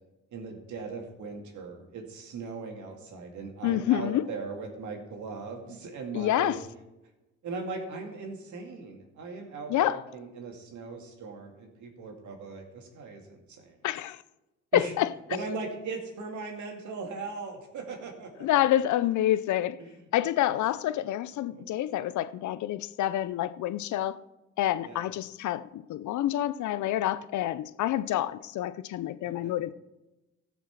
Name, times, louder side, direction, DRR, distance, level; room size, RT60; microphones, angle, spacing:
voice 1, 0.3-6.6 7.4-13.7 14.7-14.9 15.3-18.5 19.8-19.9 21.5-21.6 24.8-25.0 29.2-29.5, right 4 dB, 75° right, 2.3 m, -39 dB
voice 2, 3.6-4.2 6.1-6.6 9.7-10.0 13.8-14.2 14.7-15.1 18.4-19.8 20.1-24.2 24.6-29.7, left 13 dB, 75° left, 0.6 m, -28 dB
14.0 x 6.0 x 5.9 m
cardioid pair, 90°, 30 cm